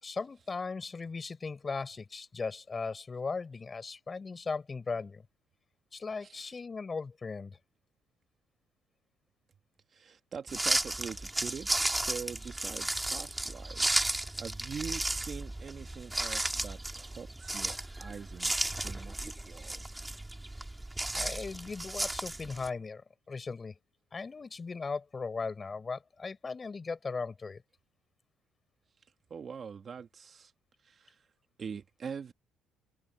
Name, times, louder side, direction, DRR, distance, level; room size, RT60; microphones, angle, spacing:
voice 1, 0.0-5.3 5.9-7.6 21.1-23.0 23.3-23.8 24.1-27.6, left 4 dB, 25° left, 5.2 m, -38 dB
voice 2, 6.2-6.5 9.9-19.8 20.5-20.6 29.3-30.5 30.8-31.2 31.6-32.3, right 6 dB, 35° right, 1.7 m, -44 dB
sound 1, 10.5-22.7, right 1 dB, 10° right, 2.7 m, -34 dB
cardioid pair, 120°, 0 cm